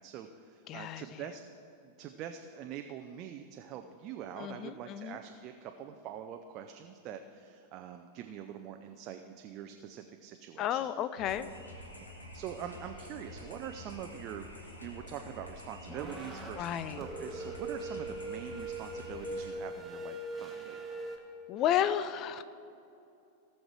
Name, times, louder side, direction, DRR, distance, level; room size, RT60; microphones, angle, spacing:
voice 1, 0.0-1.4 1.8-10.9 12.0-12.1 12.3-14.5 14.8-20.8, right 9 dB, 40° right, 6 dB, 0.5 m, -44 dB
voice 2, 0.7-1.2 4.4-5.2 10.6-11.5 16.6-17.0 21.5-22.4, left 10 dB, 35° left, 13 dB, 0.5 m, -32 dB
sound 1, 11.2-19.5, left 1 dB, 80° left, 1.5 m, -48 dB
sound 2, 12.5-12.9 13.4-13.6 14.0-15.5 15.9-16.5 17.0-21.2, right 2 dB, 5° right, 1.5 m, -42 dB
18.0 x 6.5 x 4.6 m, 2.6 s
figure-of-eight pair, 90°, 0 cm